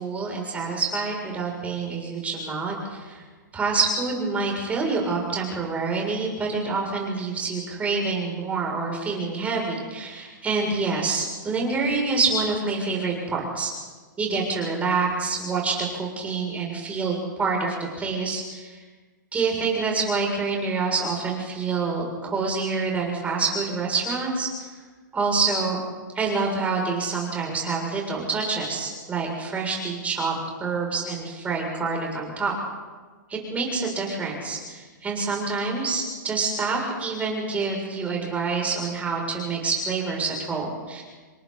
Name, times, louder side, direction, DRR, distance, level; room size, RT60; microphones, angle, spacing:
voice 1, 0.0-3.2 3.5-13.7 14.2-18.8 19.3-24.5 25.1-25.8 26.2-30.3 30.6-32.5 33.3-41.0, right 4 dB, 15° right, -1 dB, 7.2 m, -27 dB
28.5 x 23.5 x 4.3 m, 1.4 s
hypercardioid pair, 140°, 11 cm